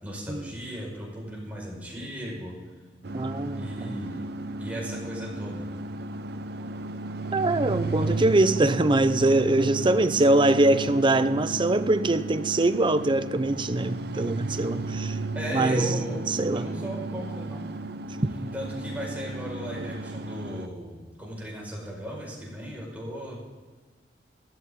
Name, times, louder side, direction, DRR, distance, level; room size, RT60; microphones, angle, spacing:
voice 1, 0.0-2.6 3.6-4.3 4.6-5.7 7.8-8.3 9.6-10.0 15.3-16.2 16.5-17.7 18.5-23.4, equal, 10° right, 5.2 m, -36 dB
sound 1, 3.0-20.7, right 2 dB, 65° right, 0.7 m, -34 dB
voice 2, 3.1-4.0 7.3-15.2 15.5-16.0 16.3-16.7, right 2 dB, 30° right, 0.6 m, -23 dB
15.5 x 14.0 x 3.8 m
head